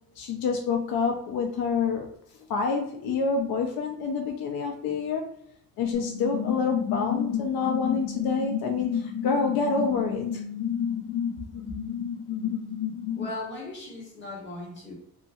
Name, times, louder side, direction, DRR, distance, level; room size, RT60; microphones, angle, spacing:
voice 1, 0.2-2.1 2.5-5.3 5.8-10.2, left 5 dB, 85° left, 2 dB, 0.6 m, -27 dB
sound 1, 5.9-13.3, left 8 dB, 45° left, 0.8 m, -31 dB
voice 2, 13.1-14.9, left 2 dB, 30° left, -4 dB, 1.4 m, -38 dB
2.8 x 2.6 x 2.4 m, 0.69 s
cardioid pair, 130°, 36 cm